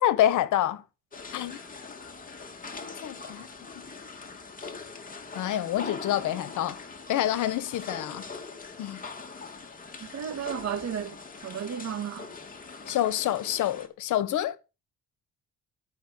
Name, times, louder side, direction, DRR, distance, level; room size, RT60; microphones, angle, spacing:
voice 1, 0.0-0.8 1.3-1.6 3.0-3.5 3.7-3.9 5.3-6.8 7.1-8.3 8.8-9.0 12.9-14.6, left 12 dB, 85° left, 1.4 m, -27 dB
sound 1, 1.1-13.9, left 4 dB, 30° left, 2.8 m, -42 dB
voice 2, 10.0-11.2 11.4-12.3, right 8 dB, 60° right, 2.2 m, -33 dB
13.5 x 5.7 x 7.0 m
cardioid pair, 90°, 30 cm